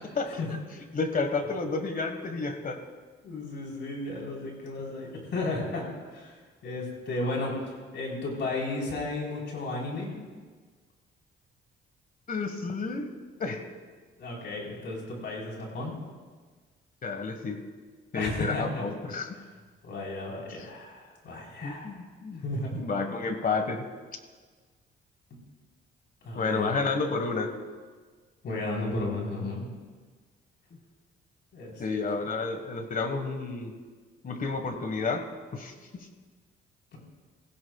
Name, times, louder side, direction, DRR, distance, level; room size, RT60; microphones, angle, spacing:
voice 1, 0.9-2.8 12.3-13.1 13.4-13.6 17.0-17.6 18.1-19.3 21.6-22.4 22.7-23.8 26.3-27.5 31.8-33.7 34.2-35.2 35.5-36.1, left 4 dB, 45° left, 7 dB, 1.5 m, -30 dB
voice 2, 3.2-7.6 7.9-10.1 14.2-15.9 18.1-18.9 19.8-21.9 22.4-22.8 26.2-26.7 28.4-29.7 31.5-31.8, left 2 dB, 65° left, -2 dB, 4.1 m, -34 dB
17.5 x 15.5 x 2.4 m, 1.5 s
cardioid pair, 90°, 20 cm